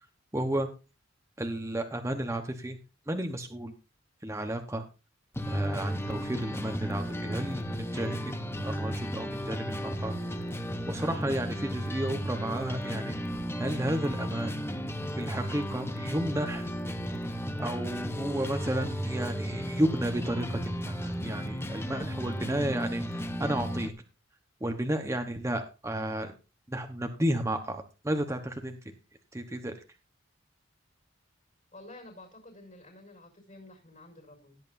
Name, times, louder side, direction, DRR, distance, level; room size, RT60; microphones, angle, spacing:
voice 1, 0.3-0.7 1.4-2.8 3.1-3.7 4.2-4.9 5.5-8.3 8.6-10.1 10.9-13.1 13.6-14.5 15.2-16.7 17.6-23.9 24.6-26.3 26.7-28.8 29.3-29.7, right 1 dB, 15° right, 5 dB, 1.0 m, -32 dB
sound 1, 5.3-23.9, equal, 10° left, 0.9 m, -34 dB
voice 2, 31.7-34.6, left 2 dB, 40° left, -1 dB, 5.9 m, -50 dB
16.5 x 9.0 x 2.6 m, 0.30 s
head